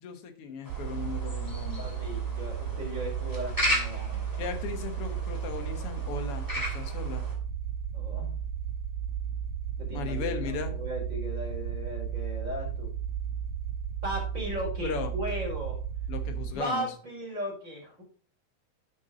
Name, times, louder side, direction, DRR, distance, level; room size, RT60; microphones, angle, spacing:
voice 1, 0.0-1.9 4.4-7.2 9.9-10.7 14.8-15.1 16.1-16.9, left 6 dB, 60° left, 7 dB, 1.9 m, -37 dB
sound 1, 0.6-7.3, equal, 5° left, 2.1 m, -36 dB
sound 2, 0.7-16.5, right 8 dB, 85° right, 2.0 m, -34 dB
voice 2, 1.7-4.4 7.9-8.3 9.8-12.9 14.0-15.8 16.5-18.0, equal, 25° right, -2 dB, 4.2 m, -37 dB
9.5 x 6.1 x 3.8 m, 0.42 s
omnidirectional pair, 3.3 m